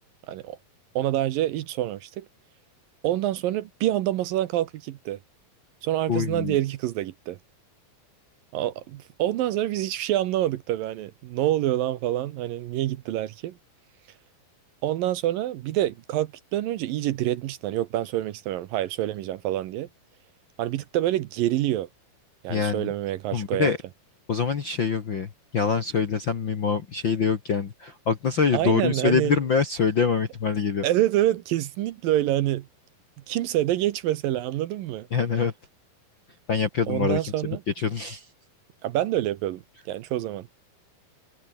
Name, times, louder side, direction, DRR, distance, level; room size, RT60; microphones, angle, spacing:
voice 1, 0.3-0.6 1.0-2.3 3.0-5.2 5.8-7.4 8.5-13.6 14.8-19.9 20.6-21.9 22.4-23.7 28.5-29.4 30.8-32.7 33.3-35.1 36.9-37.6 38.8-39.6 39.9-40.5, right 13 dB, 75° right, 2.5 m, -26 dB
voice 2, 6.1-6.6 22.5-22.9 23.3-23.8 24.3-30.8 35.1-35.5 36.5-37.3 37.8-38.2, left 5 dB, 50° left, 1.5 m, -25 dB
omnidirectional pair, 4.5 m